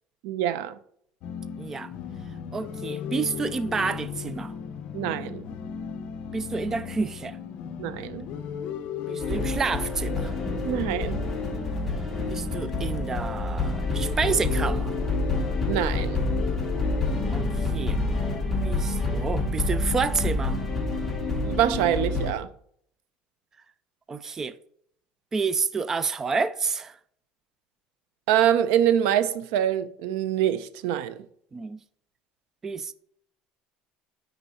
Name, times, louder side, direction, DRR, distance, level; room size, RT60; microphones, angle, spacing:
voice 1, 0.2-0.8 4.9-5.4 7.8-8.2 10.6-11.2 15.7-16.3 21.4-22.5 28.3-31.2, right 10 dB, 90° right, 0.6 m, -25 dB
sound 1, 1.2-18.4, left 7 dB, 50° left, 0.7 m, -37 dB
voice 2, 1.6-1.9 2.5-4.5 6.3-7.4 9.1-10.3 12.3-15.0 17.3-18.0 18.6-20.6 24.1-24.6 25.3-27.0 31.5-31.8 32.6-32.9, right 5 dB, 15° right, 0.3 m, -29 dB
sound 2, 9.2-22.3, left 2 dB, 10° left, 1.2 m, -28 dB
10.0 x 4.0 x 4.2 m
cardioid pair, 170°, 3 cm